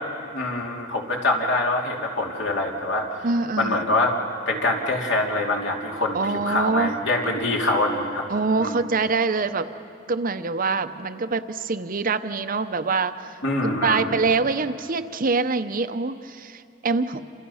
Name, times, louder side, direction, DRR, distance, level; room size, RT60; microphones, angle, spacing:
voice 1, 0.3-3.1 3.6-4.1 4.5-8.2 8.6-8.7 13.4-14.1, left 2 dB, 60° left, 0 dB, 3.0 m, -24 dB
voice 2, 3.2-3.8 6.1-6.9 8.3-9.7 10.1-13.1 13.6-17.2, right 4 dB, 45° right, 10 dB, 0.7 m, -24 dB
28.5 x 26.5 x 5.6 m, 2.6 s
head